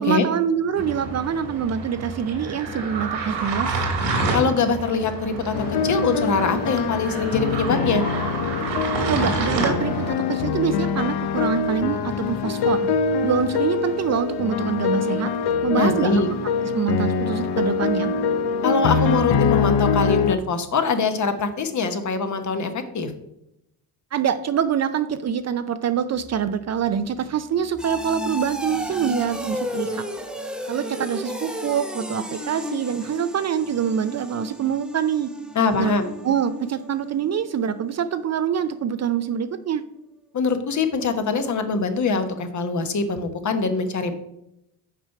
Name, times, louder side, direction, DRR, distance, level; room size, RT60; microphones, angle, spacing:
voice 1, 0.0-3.8 9.1-12.9 13.2-15.3 15.6-16.2 16.7-18.1 24.1-30.0 30.7-35.3 35.7-35.9 36.2-39.8, right 8 dB, 40° right, 11 dB, 0.5 m, -25 dB
sound 1, 0.8-10.1, right 3 dB, 85° right, 2.3 m, -28 dB
voice 2, 4.3-8.0 15.8-16.3 18.6-23.1 35.5-36.1 40.3-44.2, left 4 dB, 45° left, 8 dB, 1.0 m, -23 dB
sound 2, 5.5-20.4, left 5 dB, 70° left, 0.7 m, -24 dB
sound 3, 26.2-38.8 39.2-39.6 40.0-40.1, equal, ahead, 0.7 m, -34 dB
6.0 x 4.5 x 5.6 m, 0.82 s
supercardioid pair, 80°, 41 cm